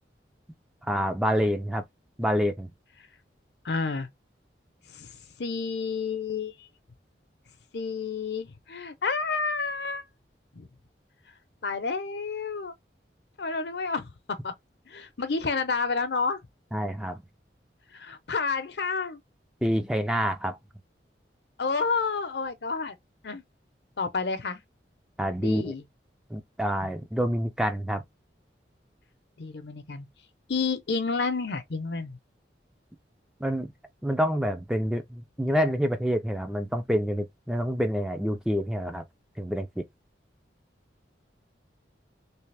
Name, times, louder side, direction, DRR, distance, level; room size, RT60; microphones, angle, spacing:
voice 1, 0.8-1.8 2.2-2.7 16.7-17.2 19.6-20.6 25.2-25.7 26.3-28.0 33.4-33.7 34.0-39.0 39.4-39.8, equal, 5° right, 0.4 m, -27 dB
voice 2, 3.6-4.1 4.9-5.1 5.4-6.5 7.7-10.0 10.5-10.7 11.6-12.7 13.4-14.1 14.4-14.5 14.9-16.4 17.9-19.2 21.6-23.0 23.2-23.4 24.0-24.6 25.3-25.8 26.8-26.9 29.4-30.1 30.5-32.2, left 4 dB, 70° left, 0.7 m, -30 dB
3.4 x 2.9 x 3.3 m
head